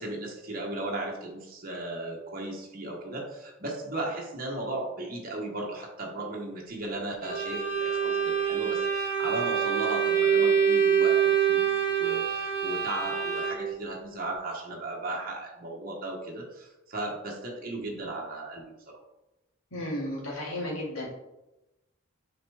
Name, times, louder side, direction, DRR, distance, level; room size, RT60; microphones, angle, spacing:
voice 1, 0.0-19.0, right 2 dB, 40° right, -1 dB, 1.2 m, -36 dB
Bowed string instrument, 7.2-13.8, right 7 dB, 25° left, 1.9 m, -25 dB
voice 2, 19.7-21.1, left 1 dB, 75° left, -3 dB, 2.1 m, -33 dB
6.6 x 4.4 x 3.4 m, 0.96 s
head